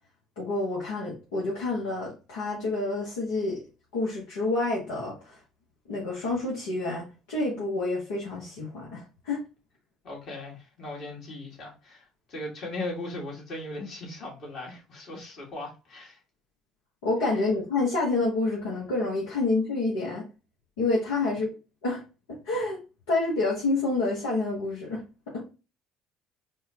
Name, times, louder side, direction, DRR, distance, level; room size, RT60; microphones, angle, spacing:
voice 1, 0.4-3.6 3.9-5.4 5.9-9.4 17.0-20.2 20.8-21.5 21.8-22.0 22.4-22.8 23.1-25.4, left 2 dB, 80° left, 1.0 m, -28 dB
voice 2, 10.0-16.2, left 2 dB, 55° left, 1.9 m, -38 dB
4.7 x 2.3 x 2.8 m
hypercardioid pair, 60°, 0 cm